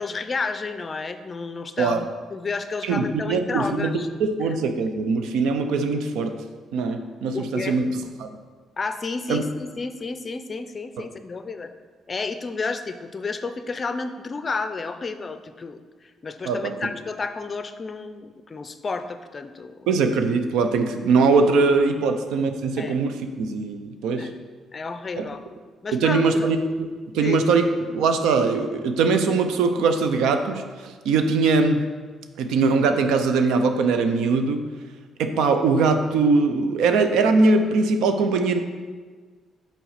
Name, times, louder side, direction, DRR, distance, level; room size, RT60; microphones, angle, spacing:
voice 1, 0.0-4.1 4.4-4.5 7.3-7.8 8.8-11.7 12.1-19.9 22.0-22.1 22.8-23.0 24.2-24.4 24.7-25.4 25.8-26.6 27.2-27.4, left 4 dB, 35° left, 10 dB, 0.5 m, -31 dB
voice 2, 2.8-3.9 4.2-6.4 6.7-7.9 8.2-8.3 9.3-9.4 16.4-16.7 19.9-24.3 25.2-25.3 25.9-26.6 27.1-31.8 32.4-34.6 35.2-38.6, right 4 dB, 90° right, 7 dB, 0.6 m, -21 dB
5.8 x 4.4 x 5.7 m, 1.5 s
cardioid pair, 90°, 0 cm